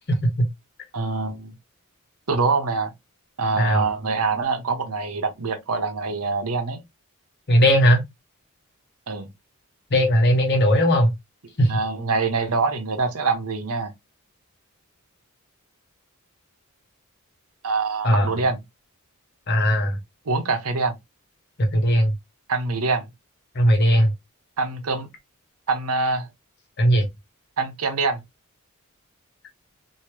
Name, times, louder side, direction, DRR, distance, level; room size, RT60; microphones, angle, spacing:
voice 1, 0.2-0.5 3.6-3.9 7.5-8.0 9.9-11.1 11.6-11.8 18.0-18.4 19.5-20.0 21.6-22.1 23.5-24.1 26.8-27.1, equal, 50° left, 1.0 m, -18 dB
voice 2, 0.9-1.5 2.3-2.9 3.4-6.8 9.1-9.3 11.6-13.9 17.6-18.6 20.3-21.0 22.5-23.1 24.6-25.1 25.7-26.3 27.6-28.2, right 4 dB, 85° right, 0.9 m, -24 dB
3.2 x 2.8 x 2.8 m
head